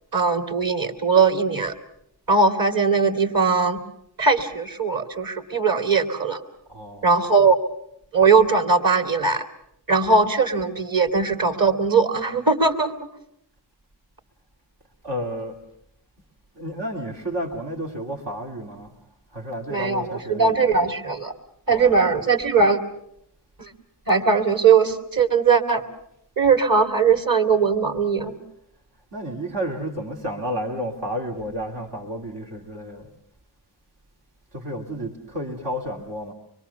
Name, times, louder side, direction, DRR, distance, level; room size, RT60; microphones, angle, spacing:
voice 1, 0.1-1.7 2.3-3.8 4.2-6.4 7.0-7.6 8.1-9.4 9.9-12.9 19.7-21.3 21.7-22.8 23.6-23.7 24.1-25.8 26.4-28.4, right 4 dB, 55° right, 2.7 m, -20 dB
voice 2, 6.7-7.2 15.0-15.6 16.6-19.0 19.3-20.8 21.7-22.1 28.2-28.3 29.1-33.1 34.5-36.3, equal, 80° right, 2.8 m, -31 dB
25.0 x 22.5 x 7.0 m
wide cardioid pair, 70°, 41 cm